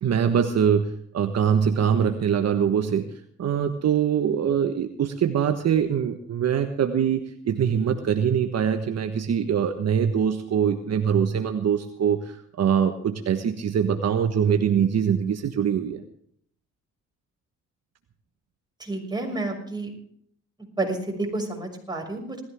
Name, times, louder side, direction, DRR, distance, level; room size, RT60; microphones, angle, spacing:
voice 1, 0.0-3.1 3.4-16.0, right 8 dB, 60° right, 7 dB, 1.4 m, -23 dB
voice 2, 18.8-19.9 20.8-22.4, right 2 dB, 15° right, 1 dB, 6.2 m, -30 dB
19.5 x 14.5 x 3.7 m, 0.64 s
cardioid pair, 90°, 30 cm